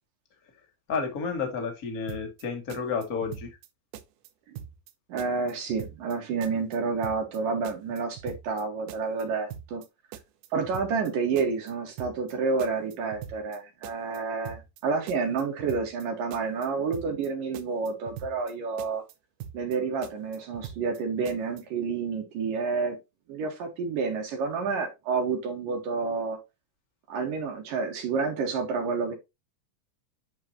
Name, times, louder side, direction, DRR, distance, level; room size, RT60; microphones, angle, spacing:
voice 1, 0.9-3.5, left 5 dB, 30° left, 1.8 m, -31 dB
sound 1, 2.1-2.4 2.7-3.7 3.9-4.3 4.6-4.9 5.2-6.2 6.4-6.8 7.0-7.4 7.6-8.6 8.9-9.2 9.5-9.9 10.1-11.1 11.4-11.7 12.0-12.3 12.6-13.6 13.8-14.2 14.5-14.8 15.1-16.0 16.3-16.7 16.9-17.3 17.5-18.5 18.8-19.1 19.4-19.8 20.0-21.0 21.3-21.6, right 10 dB, 85° right, 2.7 m, -42 dB
voice 2, 5.1-9.8 10.5-19.0 19.5-23.0 23.3-26.4 27.1-29.1, right 4 dB, 70° right, 3.1 m, -29 dB
9.5 x 4.9 x 2.8 m
omnidirectional pair, 4.2 m